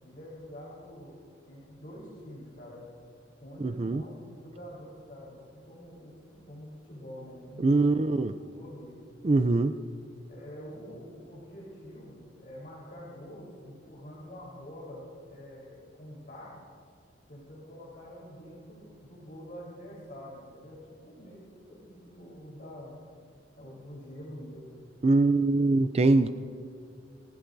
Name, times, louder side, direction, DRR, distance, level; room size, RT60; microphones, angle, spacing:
voice 1, 0.0-1.2 1.5-2.8 3.4-9.0 10.3-16.5 17.3-23.0 23.6-24.8, equal, 50° left, -6 dB, 4.1 m, -46 dB
voice 2, 3.6-4.0 7.6-8.3 9.2-9.7 25.0-26.3, right 2 dB, 35° right, 10 dB, 0.4 m, -23 dB
29.5 x 16.0 x 2.7 m, 2.2 s
head